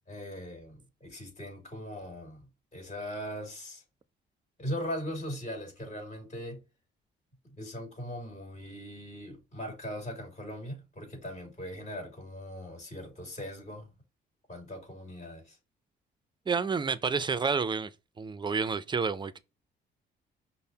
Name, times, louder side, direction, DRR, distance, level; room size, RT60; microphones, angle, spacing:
voice 1, 0.1-2.4 2.7-3.8 4.6-6.6 7.6-13.9 14.5-15.6, equal, 35° left, 2.2 m, -40 dB
voice 2, 16.5-17.9 18.2-19.4, right 5 dB, 25° right, 0.4 m, -29 dB
5.4 x 2.0 x 2.7 m
cardioid pair, 90°, 20 cm